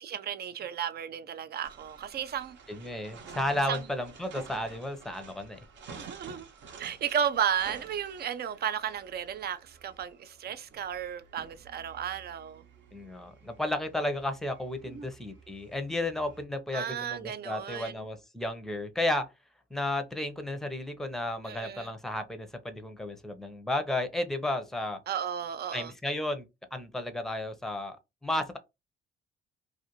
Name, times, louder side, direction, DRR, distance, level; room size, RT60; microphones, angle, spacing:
voice 1, 0.0-2.6 3.7-3.8 5.9-6.5 6.8-12.6 14.9-15.1 16.7-17.9 21.4-21.9 25.1-25.9, right 8 dB, 55° right, 0.5 m, -34 dB
sound 1, 1.6-16.4, right 5 dB, 70° right, 0.8 m, -51 dB
voice 2, 2.7-5.6 12.9-19.3 19.7-25.0 25.7-28.0 28.2-28.6, left 1 dB, ahead, 0.6 m, -33 dB
2.5 x 2.4 x 2.9 m
cardioid pair, 90°, 20 cm